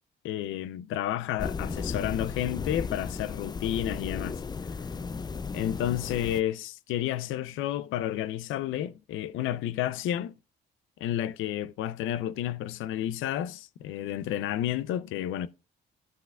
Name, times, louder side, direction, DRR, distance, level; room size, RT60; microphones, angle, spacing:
voice 1, 0.2-4.4 5.5-10.3 11.0-15.5, left 12 dB, 85° left, 0.5 m, -31 dB
sound 1, 1.4-6.4, left 5 dB, 20° left, 0.4 m, -35 dB
17.0 x 5.7 x 2.3 m
cardioid pair, 90°, 20 cm